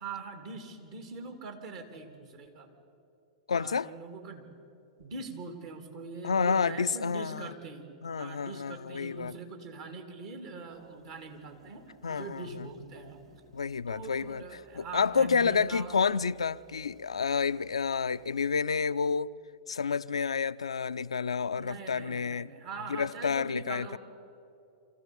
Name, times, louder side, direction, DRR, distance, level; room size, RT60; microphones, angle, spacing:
voice 1, 0.0-2.7 3.5-4.5 5.0-7.9 8.2-13.2 13.9-16.0 21.6-24.0, right 4 dB, 55° right, 2.9 m, -43 dB
voice 2, 3.5-3.9 6.2-7.5 8.0-9.3 12.0-12.7 13.5-14.4 14.7-19.3 19.7-22.5 22.9-24.0, left 5 dB, 80° left, 0.4 m, -29 dB
sound 1, 10.7-18.6, right 1 dB, 75° right, 2.0 m, -60 dB
24.5 x 15.0 x 7.1 m
figure-of-eight pair, 100°, 3 cm